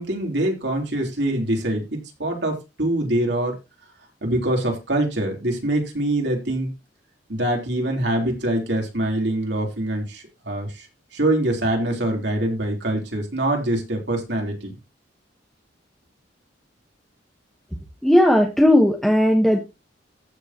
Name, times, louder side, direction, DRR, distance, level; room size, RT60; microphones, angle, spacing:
voice 1, 0.0-3.6 4.2-6.7 7.3-10.9 11.1-14.7, right 1 dB, 65° right, 1 dB, 3.8 m, -24 dB
voice 2, 18.0-19.6, left 1 dB, ahead, 1 dB, 1.3 m, -16 dB
15.0 x 6.9 x 3.0 m, 0.25 s
head